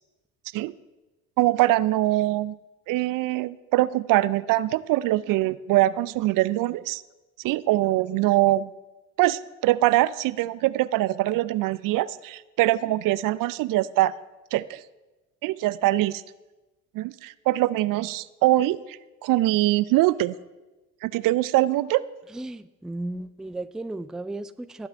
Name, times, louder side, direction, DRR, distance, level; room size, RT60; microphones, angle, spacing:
voice 1, 1.4-2.6 2.9-7.0 7.4-8.7 9.2-14.1 14.5-14.8 15.4-16.2 16.9-20.4 21.0-22.0, right 16 dB, 55° right, 18 dB, 0.5 m, -23 dB
voice 2, 22.3-24.9, right 2 dB, ahead, 12 dB, 0.4 m, -35 dB
19.5 x 8.0 x 3.4 m, 1.1 s
hypercardioid pair, 55°, 40 cm